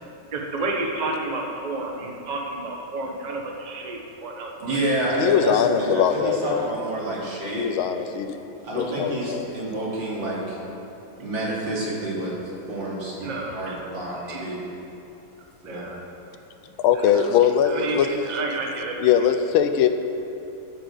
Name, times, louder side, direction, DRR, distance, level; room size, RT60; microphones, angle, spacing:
voice 1, 0.3-4.8 13.2-13.8 14.3-14.5 15.6-16.0 16.9-17.3 17.6-19.1, right 2 dB, 25° right, 1 dB, 1.0 m, -31 dB
voice 2, 4.6-7.7 8.6-10.6 11.2-12.3 12.7-13.2 13.5-14.6 15.6-15.9, right 1 dB, 65° right, -5 dB, 3.2 m, -28 dB
voice 3, 5.2-6.7 7.5-8.4 8.7-9.5 16.8-18.1 19.0-19.9, left 8 dB, 85° left, 8 dB, 1.5 m, -21 dB
13.5 x 6.3 x 7.7 m, 2.9 s
omnidirectional pair, 2.2 m